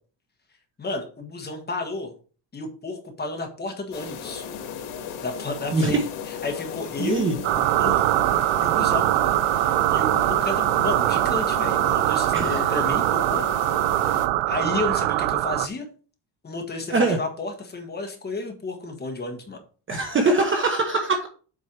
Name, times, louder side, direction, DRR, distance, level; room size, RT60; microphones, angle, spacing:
voice 1, 0.8-2.1 2.5-4.5 5.2-7.3 7.5-8.0 8.6-9.2 9.6-13.7 14.0-15.8 16.4-19.6, left 3 dB, 20° left, 3 dB, 1.5 m, -32 dB
sound 1, 3.9-14.3, left 7 dB, 85° left, 1.9 m, -35 dB
voice 2, 5.7-6.0 7.0-7.3 12.3-12.8 16.9-17.2 19.9-21.3, right 3 dB, 25° right, 4 dB, 0.9 m, -22 dB
sound 2, 7.4-15.7, right 16 dB, 90° right, 0.6 m, -22 dB
7.6 x 4.6 x 4.6 m, 0.39 s
cardioid pair, 170°, 49 cm